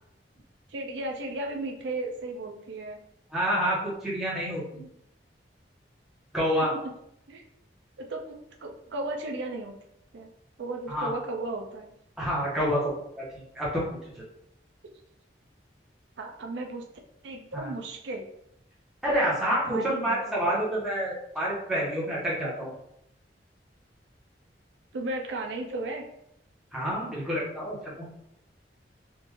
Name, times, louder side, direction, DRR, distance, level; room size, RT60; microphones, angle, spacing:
voice 1, 0.7-3.0 6.6-6.7 7.3-7.4 8.0-9.8 10.1-10.3 10.6-11.9 16.2-16.8 17.2-18.3 19.7-20.7 24.9-26.1, right 2 dB, 75° right, 2 dB, 0.4 m, -35 dB
voice 2, 3.3-4.8 6.3-6.7 10.9-11.1 12.2-13.8 14.1-14.2 17.5-17.7 19.0-22.7 26.7-28.1, equal, 5° right, -8 dB, 1.1 m, -28 dB
3.6 x 2.5 x 3.0 m, 0.78 s
head